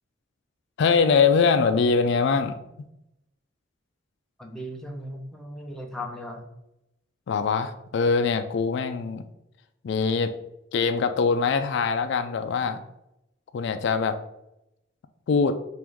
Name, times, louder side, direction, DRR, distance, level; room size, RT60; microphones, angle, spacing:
voice 1, 0.8-2.5 7.3-9.2 9.8-10.3 10.7-12.8 13.5-14.2 15.3-15.6, left 5 dB, 60° left, 9 dB, 0.3 m, -22 dB
voice 2, 4.4-6.4, left 1 dB, ahead, 1 dB, 0.5 m, -37 dB
3.5 x 2.5 x 4.6 m, 0.85 s
head